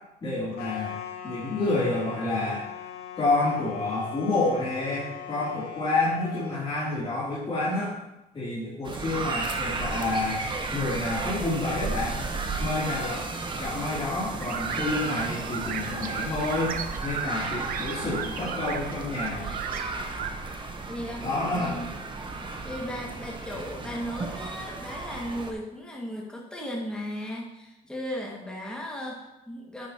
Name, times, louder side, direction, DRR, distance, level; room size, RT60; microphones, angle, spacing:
voice 1, 0.2-0.9 1.2-2.6 3.2-7.9 8.3-10.4 10.7-12.2 12.6-13.2 13.6-16.7 17.0-19.5 21.2-21.9, left 2 dB, 30° left, -10 dB, 3.0 m, -28 dB
sound 1, 0.6-6.5, left 9 dB, 75° left, 1.5 m, -40 dB
sound 2, 8.8-25.5, right 3 dB, 30° right, 1.0 m, -34 dB
sound 3, 14.3-20.3, right 8 dB, 55° right, 0.7 m, -36 dB
voice 2, 20.9-21.3 21.5-21.9 22.6-29.9, equal, 5° left, -3 dB, 1.9 m, -36 dB
10.5 x 8.3 x 2.9 m, 0.94 s
cardioid pair, 110°, 17 cm